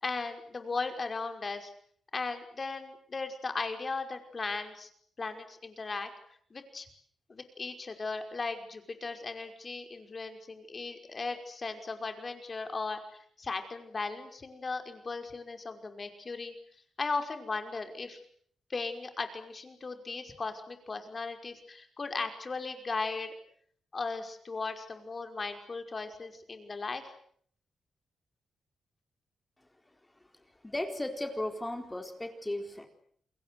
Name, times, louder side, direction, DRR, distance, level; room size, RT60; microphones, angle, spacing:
voice 1, 0.0-1.7 2.1-4.9 5.2-6.1 6.5-6.9 7.3-16.5 17.0-18.2 18.7-23.3 23.9-27.1, left 4 dB, 40° left, 6 dB, 5.5 m, -37 dB
voice 2, 30.6-32.9, left 1 dB, 15° left, 5 dB, 4.2 m, -35 dB
29.5 x 22.0 x 8.0 m, 0.63 s
cardioid pair, 75°, 0 cm